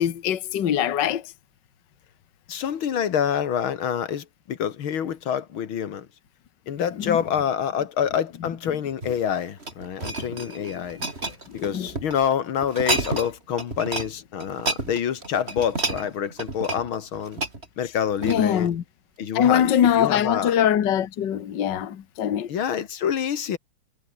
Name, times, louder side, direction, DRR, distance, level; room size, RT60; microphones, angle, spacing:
voice 1, 0.0-1.3 6.9-7.3 8.3-8.8 10.3-12.0 17.8-17.9 18.2-18.8 19.3-22.5, left 10 dB, 60° left, 1.9 m, -24 dB
voice 2, 2.5-6.1 6.7-11.0 11.5-17.4 17.8-18.7 19.2-20.5 22.5-23.6, left 8 dB, 80° left, 2.3 m, -27 dB
sound 1, 8.9-12.2 12.6-13.3 13.6-14.1 14.4-18.7 19.2-19.4, right 3 dB, 30° right, 3.4 m, -30 dB
omnidirectional pair, 2.2 m